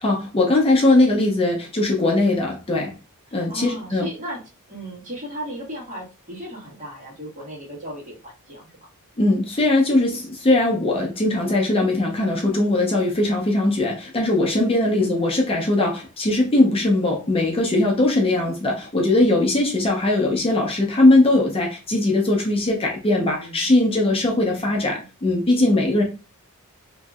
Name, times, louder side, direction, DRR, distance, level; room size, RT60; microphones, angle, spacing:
voice 1, 0.0-2.9 3.3-4.1 9.2-26.0, left 2 dB, 25° left, -1 dB, 0.6 m, -20 dB
voice 2, 3.3-4.4 4.7-8.9 14.9-15.2 23.2-23.7 24.6-25.1, right 1 dB, 35° right, -3 dB, 1.4 m, -36 dB
2.9 x 2.6 x 2.4 m, 0.31 s
head